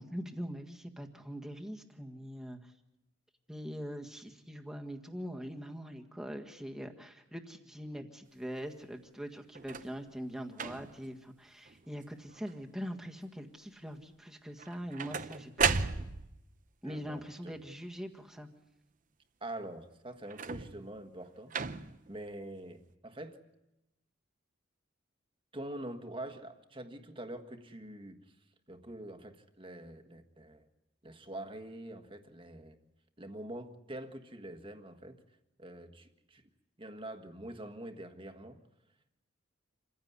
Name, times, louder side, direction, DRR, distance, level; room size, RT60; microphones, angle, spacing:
voice 1, 0.0-2.7 3.5-16.1 16.8-18.5, equal, 5° right, 2 dB, 1.7 m, -43 dB
sound 1, 9.6-10.0 10.5-11.1 11.7-12.0 12.3-12.9 14.6-16.4 20.3-20.9 21.5-22.1 22.9-23.0, right 5 dB, 40° right, 0.8 m, -35 dB
voice 2, 16.8-17.5 19.4-21.5 22.1-23.4 25.5-28.2 28.7-30.7 31.0-32.8 33.2-35.2 35.6-36.4 36.8-38.6, right 1 dB, 25° right, 7 dB, 1.6 m, -45 dB
27.0 x 16.0 x 9.7 m, 0.92 s
head